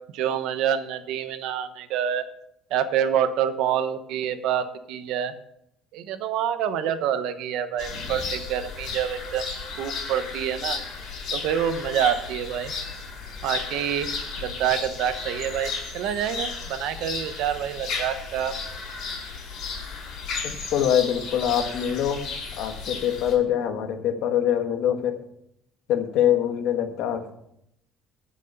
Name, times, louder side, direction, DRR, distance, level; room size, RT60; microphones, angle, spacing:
voice 1, 0.1-2.2 2.7-5.3 5.9-9.4 9.8-10.8 11.3-12.7 13.4-18.5, right 9 dB, 65° right, 10 dB, 1.1 m, -27 dB
sound 1, 7.8-23.3, left 4 dB, 45° left, 4.8 m, -34 dB
voice 2, 20.4-22.2 22.6-25.2 25.9-27.3, left 10 dB, 65° left, 6 dB, 1.6 m, -24 dB
12.5 x 6.4 x 6.7 m, 0.77 s
cardioid pair, 165°, 0 cm